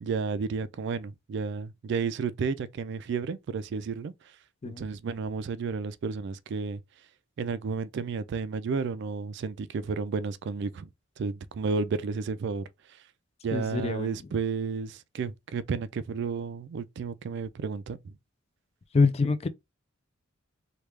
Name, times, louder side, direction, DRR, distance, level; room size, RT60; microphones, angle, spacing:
voice 1, 0.0-4.1 4.6-6.8 7.4-10.9 11.2-12.7 13.4-18.1, right 5 dB, 60° right, 0.3 m, -32 dB
voice 2, 13.5-14.2 18.9-19.5, left 4 dB, 30° left, 0.4 m, -25 dB
3.2 x 2.3 x 3.3 m
head